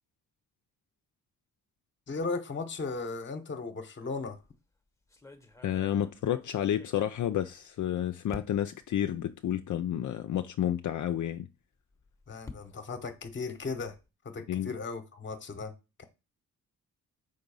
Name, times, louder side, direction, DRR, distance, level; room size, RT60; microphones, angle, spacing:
voice 1, 2.1-4.4 12.3-13.9 14.2-15.7 16.0-16.1, left 4 dB, 35° left, 1.0 m, -36 dB
sound 1, 4.3-4.6 5.1-7.8 8.3-8.9 9.6-9.7 10.0-10.1 11.8-14.1, left 3 dB, 10° left, 1.0 m, -50 dB
voice 2, 5.6-11.5 14.5-14.7, left 11 dB, 60° left, 0.5 m, -30 dB
5.4 x 3.9 x 5.4 m
cardioid pair, 100°, 35 cm